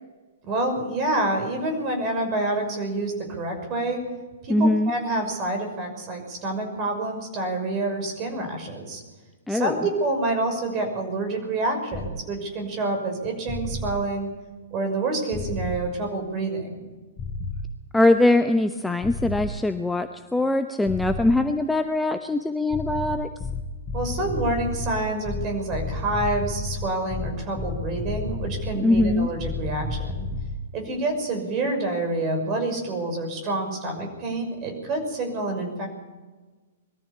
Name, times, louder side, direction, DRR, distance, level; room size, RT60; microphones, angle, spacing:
voice 1, 0.4-4.0 4.4-9.0 9.5-14.3 14.7-16.9 23.9-30.3 30.7-35.9, right 2 dB, 30° right, 4 dB, 6.1 m, -27 dB
voice 2, 4.5-4.9 9.5-9.8 17.9-23.3 28.8-29.3, left 2 dB, 5° left, 7 dB, 0.9 m, -22 dB
sound 1, 11.9-12.1 13.5-13.9 15.3-15.8 17.2-17.7 19.0-19.5 20.8-21.4 22.7-30.6, left 3 dB, 25° left, 7.6 m, -31 dB
22.0 x 14.0 x 8.5 m, 1.3 s
figure-of-eight pair, 110°, 0 cm